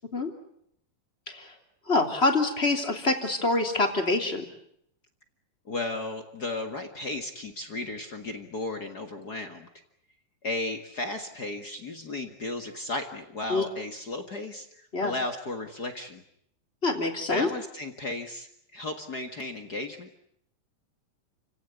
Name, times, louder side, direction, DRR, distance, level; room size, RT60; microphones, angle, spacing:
voice 1, 1.9-4.5 13.5-13.6 14.9-15.1 16.8-17.5, left 2 dB, 20° left, 4 dB, 3.0 m, -25 dB
voice 2, 5.6-9.7 10.4-16.2 17.3-20.1, left 2 dB, 40° left, 6 dB, 1.6 m, -34 dB
29.5 x 17.5 x 9.6 m, 0.73 s
omnidirectional pair, 4.1 m